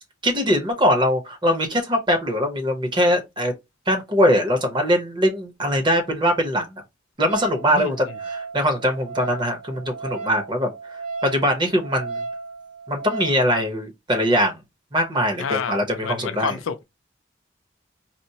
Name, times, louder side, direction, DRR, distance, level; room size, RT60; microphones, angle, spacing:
voice 1, 0.2-3.5 3.9-6.7 7.2-10.7 11.2-12.2 12.9-14.6 14.9-16.6, equal, 25° right, 0.8 m, -22 dB
Wind instrument woodwind instrument, 7.3-13.4, right 4 dB, 45° right, 1.4 m, -35 dB
voice 2, 7.7-8.2 15.4-16.8, left 6 dB, 90° left, 0.5 m, -29 dB
4.3 x 2.0 x 2.7 m
head